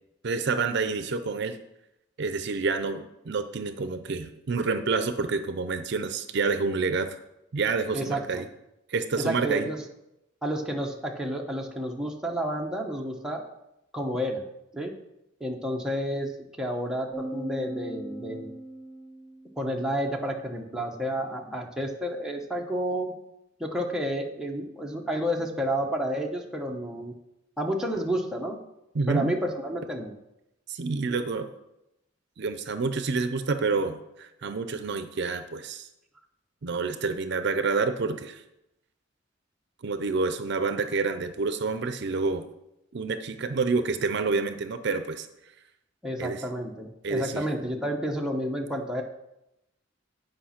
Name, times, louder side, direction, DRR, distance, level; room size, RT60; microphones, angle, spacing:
voice 1, 0.2-1.6 2.2-7.2 7.5-8.4 8.9-9.7 28.9-29.3 30.7-31.5 32.4-35.9 36.6-38.4 39.8-42.5 42.9-45.3 46.2-46.4 47.0-47.4, right 4 dB, 60° right, 9 dB, 0.5 m, -28 dB
voice 2, 7.9-8.4 9.2-9.8 10.4-13.4 13.9-14.4 14.7-14.9 15.4-16.3 16.6-18.5 19.6-23.1 23.6-27.1 27.6-28.6 29.1-30.1 46.0-49.0, equal, 5° right, 0 dB, 0.9 m, -30 dB
sound 1, 17.1-19.6, right 1 dB, 30° left, 0.9 m, -38 dB
8.8 x 5.1 x 5.8 m, 0.88 s
head